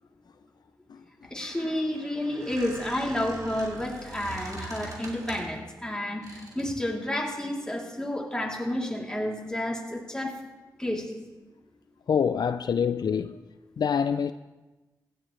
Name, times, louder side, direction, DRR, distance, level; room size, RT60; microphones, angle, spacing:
Squeak, 1.2-5.6 6.2-6.7, right 2 dB, 55° right, 3.5 m, -43 dB
voice 1, 1.3-10.3 10.8-11.1, left 1 dB, 10° left, 3.2 m, -30 dB
voice 2, 12.1-13.4 13.8-14.3, left 7 dB, 65° left, 0.4 m, -25 dB
16.0 x 13.0 x 3.2 m
cardioid pair, 60°, 7 cm